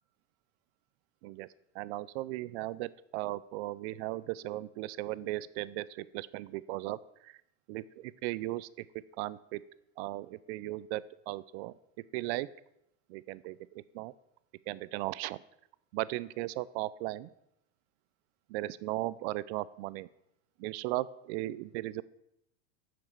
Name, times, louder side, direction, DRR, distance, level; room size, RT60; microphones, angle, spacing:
voice 1, 1.7-7.3 7.7-8.9 9.2-9.6 10.0-11.7 12.1-12.5 13.1-14.1 14.7-15.4 15.9-17.3 18.5-20.1 20.6-22.0, right 17 dB, 55° right, 18 dB, 0.5 m, -37 dB
7.5 x 6.0 x 6.4 m, 0.82 s
supercardioid pair, 130°, 40 cm